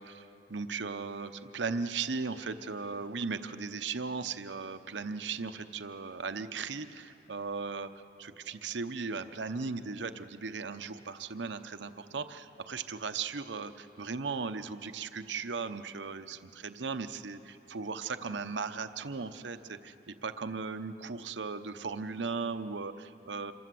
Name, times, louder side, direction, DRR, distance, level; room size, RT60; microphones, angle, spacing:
voice 1, 0.0-7.9 8.2-23.5, right 4 dB, 85° right, 10 dB, 0.8 m, -37 dB
27.0 x 22.5 x 7.7 m, 2.9 s
head